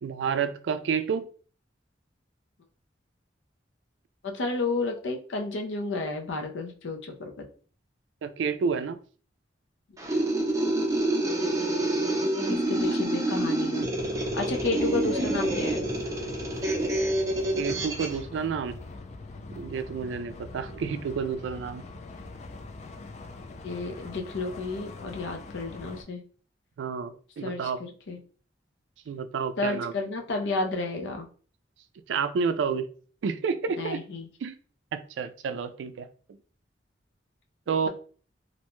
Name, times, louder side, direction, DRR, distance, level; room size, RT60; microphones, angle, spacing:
voice 1, 0.0-1.3 8.2-9.0 17.6-18.8 19.5-21.8 26.8-27.8 29.1-29.9 32.1-32.9 33.2-34.0 34.4-34.6 34.9-36.1 37.7-37.9, right 6 dB, 80° right, 12 dB, 0.3 m, -30 dB
voice 2, 4.2-7.5 10.0-10.3 12.5-13.9 14.3-15.8 23.6-26.2 27.4-28.2 29.6-31.3 33.8-34.3, left 3 dB, 90° left, 4 dB, 0.6 m, -31 dB
sound 1, 10.0-18.2, right 1 dB, 20° right, 0.5 m, -27 dB
sound 2, 14.0-26.0, left 3 dB, 40° left, 0.3 m, -43 dB
2.5 x 2.1 x 3.0 m, 0.41 s
head